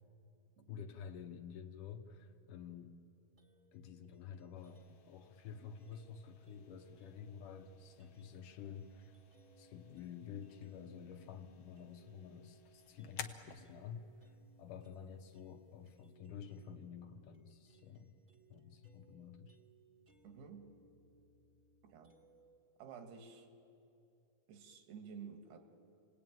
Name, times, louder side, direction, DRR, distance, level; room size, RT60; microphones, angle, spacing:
voice 1, 0.7-3.0 3.7-9.2 9.6-14.0 14.6-18.1 18.5-19.6, left 7 dB, 70° left, 6 dB, 2.3 m, -50 dB
sound 1, 3.4-5.1 5.8-10.8 11.1-22.6, right 3 dB, 40° right, 0.7 m, -68 dB
sound 2, 4.6-16.2, left 8 dB, 85° left, 1.3 m, -57 dB
voice 2, 20.2-20.8 21.8-22.1 22.8-23.5 24.5-25.6, right 6 dB, 85° right, 5 dB, 3.7 m, -52 dB
29.5 x 19.5 x 9.2 m, 2.7 s
omnidirectional pair, 4.4 m